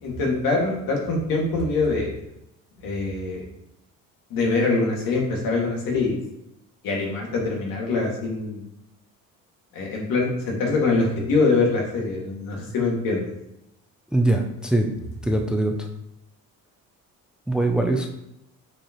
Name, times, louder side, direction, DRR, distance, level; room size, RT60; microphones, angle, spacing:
voice 1, 0.0-2.1 2.8-3.4 4.3-6.2 6.8-8.6 9.7-13.2, left 3 dB, 80° left, -2 dB, 2.2 m, -24 dB
voice 2, 14.1-14.9 15.2-15.9 17.5-18.1, right 1 dB, ahead, 3 dB, 0.5 m, -22 dB
7.4 x 4.8 x 3.1 m, 0.83 s
cardioid pair, 140°, 34 cm